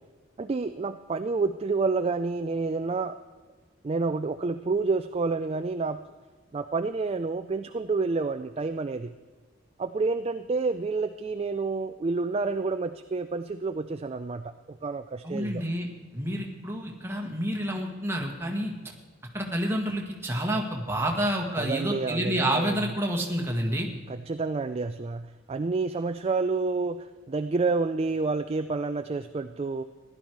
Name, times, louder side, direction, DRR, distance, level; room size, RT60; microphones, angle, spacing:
voice 1, 0.4-3.2 3.8-6.0 6.5-9.1 9.8-15.6 21.6-22.8 24.1-29.8, right 3 dB, 30° right, 9 dB, 0.3 m, -29 dB
voice 2, 15.2-18.7 19.3-23.9, right 1 dB, 10° right, 0 dB, 1.6 m, -29 dB
15.5 x 11.0 x 4.6 m, 1.4 s
head